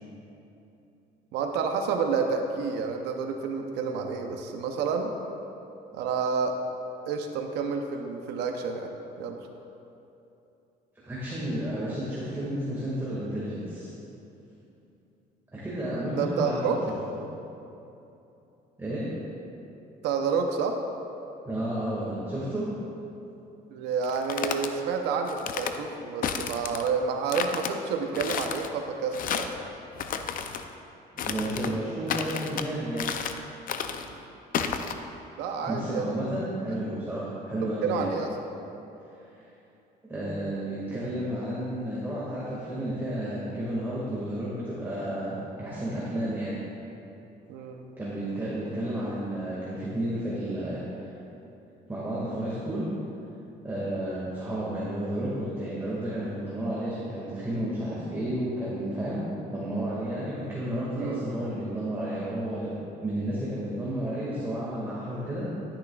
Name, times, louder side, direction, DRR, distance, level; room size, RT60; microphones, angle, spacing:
voice 1, 1.3-5.1 5.9-6.6 7.1-8.9 9.2-9.4 16.2-16.8 20.0-20.8 23.7-29.5 34.1-34.2 35.4-36.2 37.8-38.3 47.5-47.8 60.9-61.2, right 5 dB, 90° right, 4 dB, 0.8 m, -29 dB
voice 2, 11.0-13.9 15.5-16.8 18.8-19.1 21.4-22.7 31.2-33.1 35.6-38.1 39.2-39.4 40.1-46.5 48.0-51.1 51.9-52.8 53.6-59.2 59.5-62.7 63.0-65.5, right 1 dB, 15° right, -8 dB, 2.0 m, -32 dB
sound 1, 24.0-24.7 25.3-25.8 26.2-26.9 27.3-27.7 28.1-28.7 29.1-29.6 30.0-30.6 31.2-31.7 32.1-32.7 33.0-33.4 33.7-34.1 34.5-34.9, left 7 dB, 55° left, 0.6 m, -32 dB
11.5 x 10.0 x 2.4 m, 2.9 s
cardioid pair, 110°, 17 cm